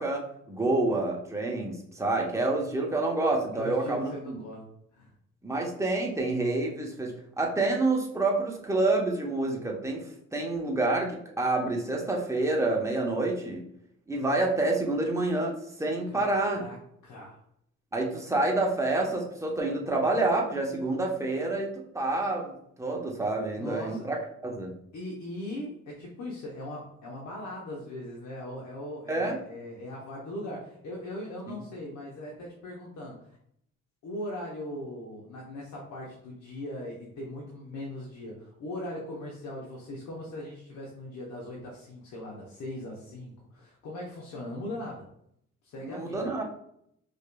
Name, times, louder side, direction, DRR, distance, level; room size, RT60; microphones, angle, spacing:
voice 1, 0.0-4.4 5.4-13.6 14.1-16.6 17.9-24.2 24.4-24.7 29.1-29.4 31.5-31.6 45.8-46.4, right 2 dB, 10° right, -1 dB, 0.9 m, -28 dB
voice 2, 3.5-5.1 16.1-16.7 17.0-17.4 23.5-24.1 24.9-33.4 34.0-45.0 45.6-46.3, left 1 dB, 70° left, -2 dB, 0.9 m, -39 dB
5.0 x 2.6 x 2.2 m, 0.71 s
cardioid pair, 90°, 30 cm